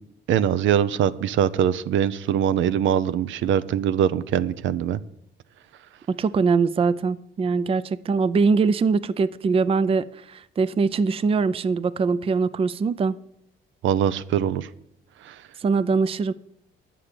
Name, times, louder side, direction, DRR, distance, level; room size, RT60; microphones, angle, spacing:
voice 1, 0.3-5.0 13.8-14.7 15.2-15.3, right 9 dB, 75° right, 14 dB, 0.6 m, -22 dB
voice 2, 6.1-13.2 15.6-16.3, right 4 dB, 30° right, 15 dB, 0.4 m, -22 dB
9.7 x 7.5 x 6.7 m, 0.74 s
cardioid pair, 90°, 20 cm